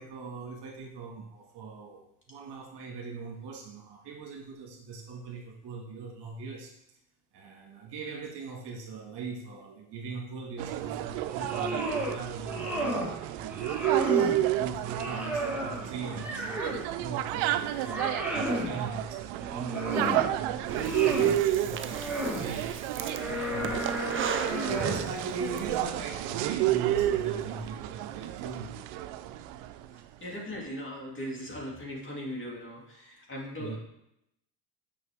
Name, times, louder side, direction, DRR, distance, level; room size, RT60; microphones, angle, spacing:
voice 1, 0.0-6.7 7.3-13.6 14.0-22.8 23.5-28.8 33.6-33.8, right 4 dB, 55° right, -1 dB, 2.0 m, -40 dB
sound 1, 10.6-29.9, right 13 dB, 70° right, 0.6 m, -31 dB
sound 2, 11.3-12.2 12.5-13.1 13.5-14.4 14.8-16.9 17.3-18.7 19.4-20.3 20.6-21.4 21.9-22.5 23.0-25.1, equal, 5° right, 1.5 m, -33 dB
Breathing, 20.7-25.6, right 8 dB, 25° right, 0.4 m, -37 dB
voice 2, 30.2-33.8, equal, 25° left, -3 dB, 2.6 m, -38 dB
6.3 x 5.9 x 3.5 m, 0.79 s
supercardioid pair, 95°, 50 cm